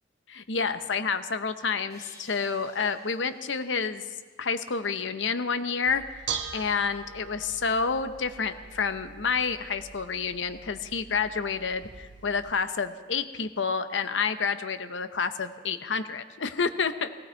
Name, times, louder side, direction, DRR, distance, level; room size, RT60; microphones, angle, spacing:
voice 1, 0.3-4.0 4.4-6.3 6.5-17.1, left 5 dB, 85° left, 10 dB, 0.8 m, -29 dB
sound 1, 1.9-5.0, left 1 dB, 20° left, 6.4 m, -56 dB
Bell / Dishes pots and pans, 5.9-12.5, right 6 dB, 70° right, 1.2 m, -42 dB
17.5 x 17.0 x 4.5 m, 1.5 s
head